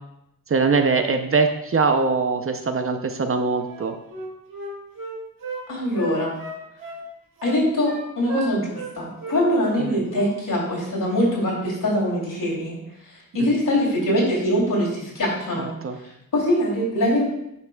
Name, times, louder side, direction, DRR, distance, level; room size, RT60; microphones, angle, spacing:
voice 1, 0.5-4.0 9.8-10.1 13.4-13.5 15.6-16.0, right 4 dB, 40° right, 6 dB, 0.5 m, -22 dB
Wind instrument woodwind instrument, 3.7-5.6 5.9-7.0 7.4-8.0 8.3-8.9 9.2-9.4 9.7-10.3 10.6-10.8, right 3 dB, 65° right, 1.9 m, -34 dB
voice 2, 5.7-6.3 7.4-12.8 13.1-15.7 16.3-17.2, left 1 dB, 65° left, -4 dB, 2.8 m, -23 dB
10.5 x 5.6 x 2.3 m, 0.82 s
wide cardioid pair, 120°, 35 cm